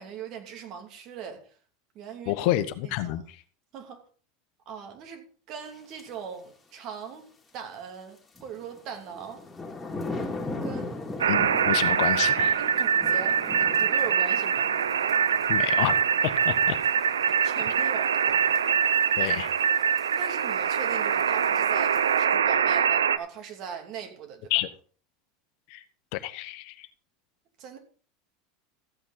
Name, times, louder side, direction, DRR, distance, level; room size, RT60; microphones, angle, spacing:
voice 1, 0.0-1.5 1.9-2.4 2.8-3.2 3.7-4.0 4.7-7.3 7.5-9.4 10.6-10.9 12.6-14.7 17.2-18.5 20.2-24.5 27.6-27.8, right 7 dB, 50° right, 2.9 m, -40 dB
voice 2, 2.3-3.4 11.3-12.6 15.5-15.9 16.2-16.8 19.2-19.5 24.5-24.7 25.7-25.8 26.1-26.9, left 15 dB, 60° left, 1.1 m, -29 dB
sound 1, 6.0-6.1 8.4-22.2, left 2 dB, 15° left, 2.7 m, -40 dB
sound 2, 11.2-23.2, right 7 dB, 85° right, 0.6 m, -24 dB
14.5 x 8.7 x 4.0 m
hypercardioid pair, 80°, 0 cm